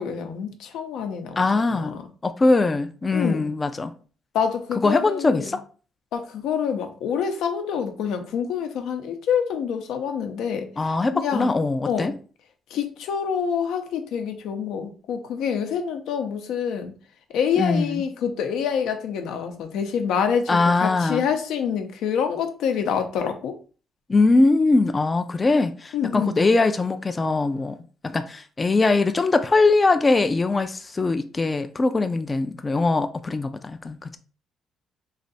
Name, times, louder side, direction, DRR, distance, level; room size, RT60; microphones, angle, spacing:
voice 1, 0.0-2.0 3.1-3.5 4.3-5.6 6.1-10.7 11.1-11.5 11.9-12.2 12.7-16.9 17.3-23.6 25.9-26.4, left 7 dB, 90° left, 0.6 m, -26 dB
voice 2, 1.4-2.0 2.2-3.9 4.8-5.6 10.8-12.1 17.6-18.0 20.5-21.2 24.1-27.8 28.0-34.2, left 3 dB, 25° left, 0.3 m, -21 dB
3.2 x 2.6 x 4.0 m
cardioid pair, 115°, 0 cm